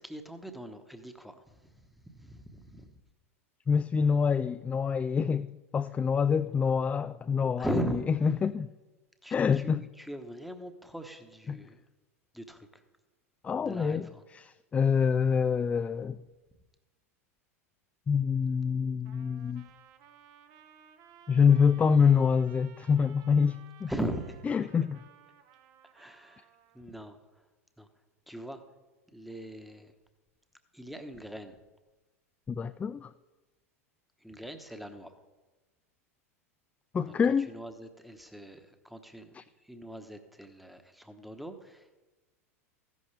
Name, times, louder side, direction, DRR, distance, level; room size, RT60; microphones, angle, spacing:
voice 1, 0.0-3.0 7.6-8.1 9.2-11.8 12.3-12.8 13.6-14.2 23.9-24.5 25.9-26.5 26.7-27.2 27.8-27.9 28.3-28.6 29.1-29.9 30.7-31.6 34.2-35.1 37.1-37.2 37.5-42.0, right 1 dB, ahead, 7 dB, 1.2 m, -40 dB
voice 2, 3.7-5.5 5.7-7.7 8.2-8.7 9.3-9.8 11.5-11.6 13.4-14.1 14.3-14.4 14.7-16.2 18.1-19.7 21.3-23.9 24.5-25.0 32.5-33.1 36.9-37.5 39.3-39.4, left 6 dB, 15° left, 11 dB, 0.3 m, -26 dB
Trumpet, 19.0-26.9, right 9 dB, 50° right, 1.0 m, -57 dB
14.5 x 11.0 x 3.4 m, 1.2 s
hypercardioid pair, 90°, 8 cm